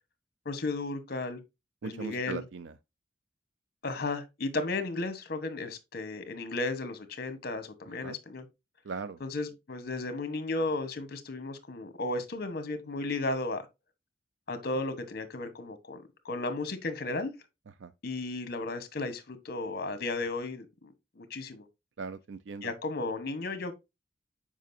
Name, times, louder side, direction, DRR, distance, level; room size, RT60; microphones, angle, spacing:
voice 1, 0.4-1.4 1.8-2.4 3.8-8.4 9.2-13.7 14.5-17.3 18.0-21.6 22.6-23.7, left 2 dB, 55° left, 1.1 m, -34 dB
voice 2, 1.8-2.7 8.0-8.2 8.8-9.2 17.8-17.9 22.0-22.7, right 5 dB, 85° right, 0.5 m, -39 dB
7.4 x 5.0 x 2.6 m
head